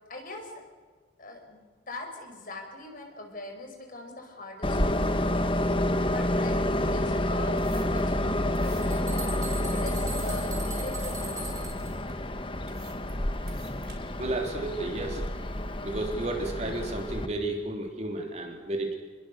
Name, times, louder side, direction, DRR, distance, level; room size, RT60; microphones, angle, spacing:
voice 1, 0.1-0.6 1.2-1.6 1.9-11.5, left 2 dB, 45° left, 4 dB, 5.3 m, -42 dB
Train, 4.6-17.3, left 1 dB, 25° left, 1.2 m, -29 dB
sound 1, 7.4-13.9, right 8 dB, 55° right, 6.8 m, -55 dB
sound 2, 8.8-11.9, right 4 dB, 15° right, 5.4 m, -40 dB
voice 2, 14.2-15.3 15.8-18.9, right 2 dB, 35° right, 2 dB, 3.6 m, -32 dB
28.5 x 22.0 x 6.6 m, 1.4 s
head